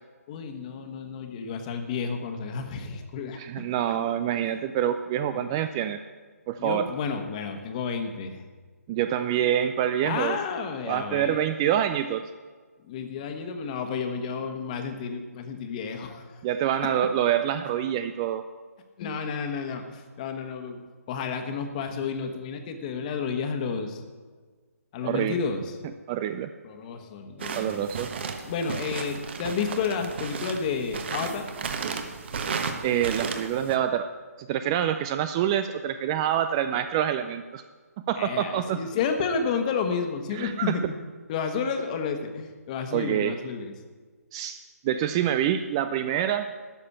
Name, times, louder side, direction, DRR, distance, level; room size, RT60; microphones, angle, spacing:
voice 1, 0.3-3.7 5.3-5.5 6.6-8.4 10.0-11.4 12.9-16.3 16.8-16.9 19.0-24.0 24.9-25.8 26.6-27.8 28.4-31.5 38.2-40.9 41.3-43.7, left 5 dB, 30° left, 6 dB, 1.3 m, -31 dB
voice 2, 3.4-6.0 6.5-6.9 8.9-10.4 10.9-12.2 16.4-18.4 25.0-25.4 26.1-26.5 27.5-28.1 32.8-34.1 34.4-37.6 38.1-38.8 40.3-40.8 42.9-43.4 44.3-44.6 44.8-46.5, right 10 dB, 20° right, 10 dB, 0.3 m, -26 dB
sound 1, 27.4-33.8, right 5 dB, 45° right, 1.2 m, -34 dB
13.0 x 6.6 x 8.6 m, 1.5 s
figure-of-eight pair, 145°, 9 cm